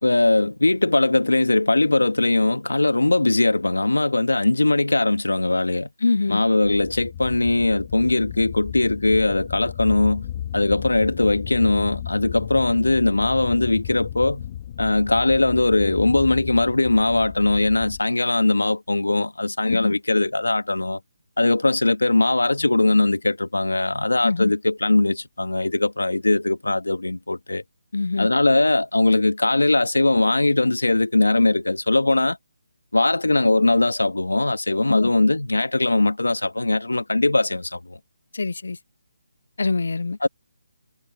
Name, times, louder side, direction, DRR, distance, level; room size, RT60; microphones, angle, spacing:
voice 1, 0.0-5.9 6.3-10.3 10.5-14.4 14.8-21.0 21.4-27.6 28.2-32.4 32.9-38.0 40.2-40.3, left 2 dB, 90° left, 2.0 m, -20 dB
voice 2, 6.0-6.4 19.7-19.9 24.2-24.5 27.9-28.3 34.9-35.1 38.3-38.8 39.6-40.2, left 3 dB, 70° left, 0.3 m, -23 dB
sound 1, 6.6-18.0, left 11 dB, 30° left, 3.2 m, -35 dB
figure-of-eight pair, 155°, 0 cm